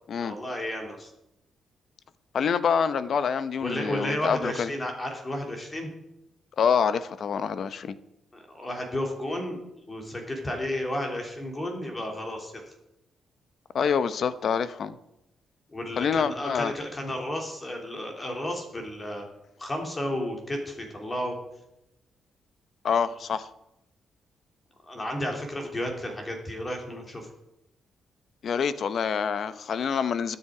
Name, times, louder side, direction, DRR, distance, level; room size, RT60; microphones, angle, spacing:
voice 1, 0.2-1.1 3.6-5.9 8.3-9.6 9.9-12.6 15.7-19.3 19.6-21.3 24.9-27.3, left 1 dB, 20° left, 2 dB, 2.7 m, -32 dB
voice 2, 2.3-4.7 6.6-7.9 13.7-15.0 16.0-16.7 22.8-23.5 28.4-30.4, left 6 dB, 50° left, 14 dB, 0.7 m, -26 dB
21.5 x 7.1 x 4.9 m, 0.86 s
wide cardioid pair, 165°, 0 cm